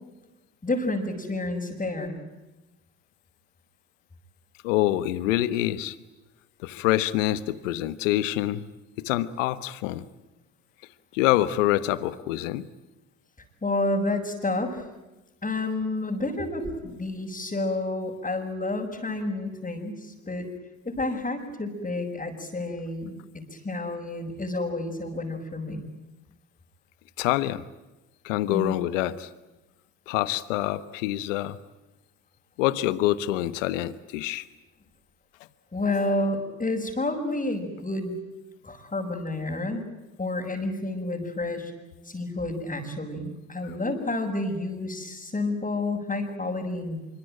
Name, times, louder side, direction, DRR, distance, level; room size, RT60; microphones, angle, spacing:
voice 1, 0.6-2.2 13.6-14.8 15.4-20.5 20.8-25.9 28.5-28.8 35.7-38.1 38.6-39.8 40.2-41.7 42.0-47.0, left 2 dB, 20° left, -4 dB, 6.4 m, -30 dB
voice 2, 4.6-6.0 6.6-8.6 9.0-10.1 11.1-12.7 27.2-27.6 28.2-29.3 30.1-31.6 32.6-34.5, left 15 dB, 85° left, 15 dB, 1.3 m, -26 dB
25.5 x 24.5 x 9.0 m, 1.0 s
hypercardioid pair, 65°, 37 cm